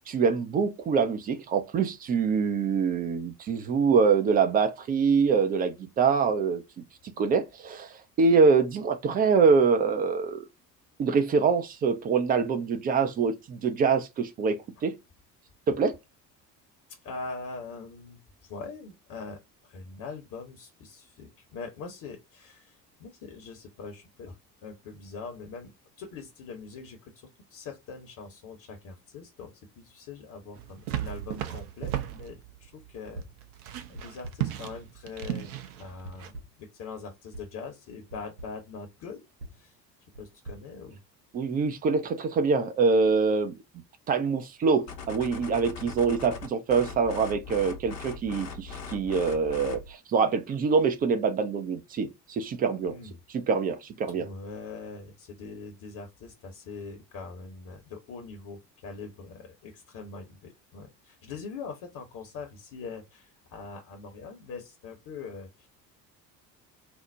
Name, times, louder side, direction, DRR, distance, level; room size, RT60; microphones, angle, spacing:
voice 1, 0.1-6.6 7.2-10.4 11.0-14.9 15.7-16.0 41.3-43.6 44.1-53.0 53.3-54.3, right 5 dB, 20° right, 0.4 m, -25 dB
voice 2, 16.9-25.7 26.0-33.2 33.9-39.2 39.5-39.8 40.2-41.0 52.8-53.2 54.1-65.7, left 4 dB, 40° left, 0.9 m, -42 dB
sound 1, 30.5-36.3, right 12 dB, 60° right, 0.7 m, -36 dB
sound 2, 33.1-33.5 33.9-34.6 35.2-35.6 36.0-36.7 37.3-37.6 38.1-38.6 39.4-41.5, right 1 dB, 80° right, 1.3 m, -46 dB
sound 3, 44.9-49.9, left 5 dB, 75° left, 0.8 m, -40 dB
4.3 x 2.1 x 2.6 m
figure-of-eight pair, 60°, 50 cm